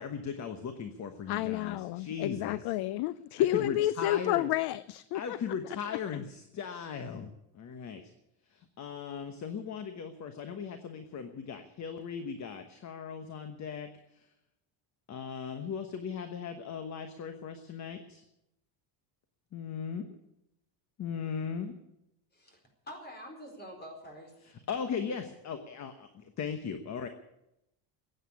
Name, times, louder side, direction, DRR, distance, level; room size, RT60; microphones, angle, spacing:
voice 1, 0.0-2.6 3.5-4.5 5.1-8.0 8.5-13.9 14.1-14.2 15.1-18.2 19.5-20.1 21.0-21.7 24.7-27.1, left 6 dB, 35° left, 8 dB, 1.2 m, -38 dB
voice 2, 1.3-5.4, left 14 dB, 55° left, 18 dB, 0.5 m, -30 dB
voice 3, 22.8-24.6, equal, 20° left, 3 dB, 4.4 m, -47 dB
15.5 x 9.3 x 9.8 m, 0.86 s
cardioid pair, 145°, 47 cm